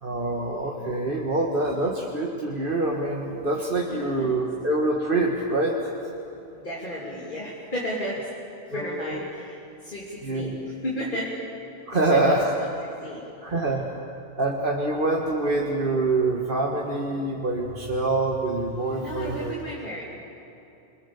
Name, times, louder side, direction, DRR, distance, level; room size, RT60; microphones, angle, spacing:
voice 1, 0.0-5.8 8.7-9.2 10.2-10.5 11.9-12.5 13.4-13.8 14.4-19.6, right 2 dB, 55° right, -1 dB, 1.9 m, -25 dB
voice 2, 1.5-1.9 3.9-4.4 6.5-8.3 8.7-11.4 11.9-12.7 13.0-13.3 19.0-20.0, equal, 50° left, -5 dB, 3.4 m, -34 dB
29.5 x 22.0 x 7.1 m, 2.9 s
omnidirectional pair, 1.1 m